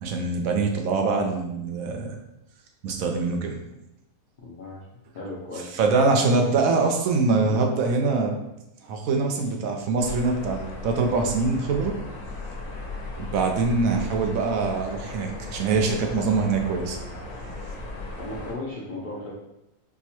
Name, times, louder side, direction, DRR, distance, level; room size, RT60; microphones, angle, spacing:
voice 1, 0.0-2.2 2.8-3.6 5.7-8.3 8.8-12.0 13.2-17.0, right 4 dB, 70° right, 3 dB, 0.9 m, -24 dB
voice 2, 4.4-4.8 5.1-5.8 7.3-7.6 13.9-14.1 18.2-19.3, left 2 dB, 80° left, -5 dB, 0.4 m, -36 dB
sound 1, 10.0-18.5, left 2 dB, 65° left, 1.1 m, -37 dB
4.4 x 2.1 x 2.9 m, 0.89 s
omnidirectional pair, 1.6 m